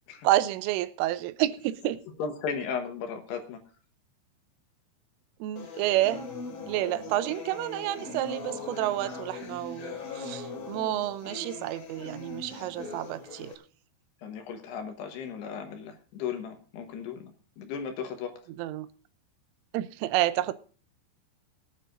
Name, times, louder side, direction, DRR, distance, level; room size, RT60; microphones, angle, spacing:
voice 1, 0.2-2.0 5.4-6.2 6.7-13.5 18.6-18.9 19.7-20.5, right 15 dB, 90° right, 14 dB, 3.3 m, -29 dB
voice 2, 2.2-3.6 14.2-18.4, left 6 dB, 70° left, 5 dB, 2.9 m, -36 dB
sound 1, 5.6-13.5, left 3 dB, 50° left, 4.2 m, -40 dB
23.0 x 9.8 x 2.6 m, 0.40 s
omnidirectional pair, 5.6 m